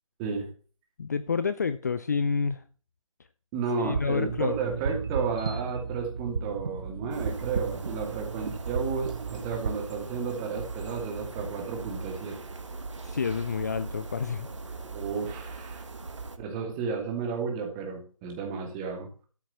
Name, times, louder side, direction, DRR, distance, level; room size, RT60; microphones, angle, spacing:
voice 1, 1.0-2.6 3.8-4.5 13.0-14.5, left 5 dB, 30° left, 0.5 m, -28 dB
voice 2, 3.5-12.4 14.8-15.8 16.4-19.1, right 5 dB, 15° right, 2.6 m, -32 dB
sound 1, 3.8-9.7, right 5 dB, 45° right, 1.0 m, -34 dB
sound 2, 7.1-16.4, right 3 dB, 60° right, 1.7 m, -39 dB
13.0 x 5.9 x 7.1 m
figure-of-eight pair, 150°, 18 cm